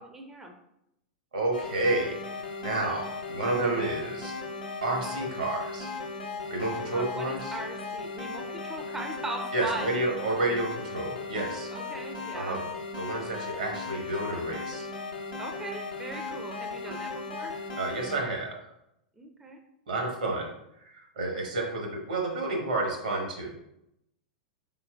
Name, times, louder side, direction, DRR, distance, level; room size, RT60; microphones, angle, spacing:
voice 1, 0.1-0.5 6.9-10.0 11.7-12.6 15.4-17.6 19.2-19.6, right 2 dB, 10° right, 3 dB, 0.5 m, -39 dB
voice 2, 1.3-2.1 2.6-4.3 4.8-5.9 6.5-7.5 9.5-11.7 12.3-12.7 12.9-14.9 17.8-18.5 19.9-20.5 20.8-23.5, right 2 dB, 70° right, 1 dB, 1.1 m, -30 dB
sound 1, 1.5-18.2, left 4 dB, 80° left, 0.7 m, -37 dB
4.2 x 3.8 x 2.3 m, 0.81 s
figure-of-eight pair, 95°, 4 cm